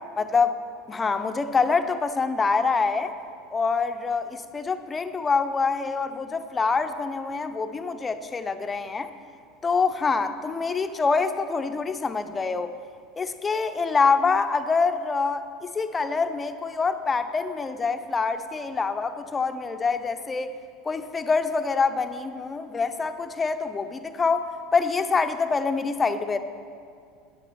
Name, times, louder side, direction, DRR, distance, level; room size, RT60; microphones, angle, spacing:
voice 1, 0.2-0.5 0.9-3.1 3.5-9.1 9.6-12.7 13.2-20.5 20.8-26.4, left 4 dB, 15° left, 9 dB, 0.5 m, -25 dB
9.8 x 8.6 x 5.9 m, 2.3 s
supercardioid pair, 145°, 0 cm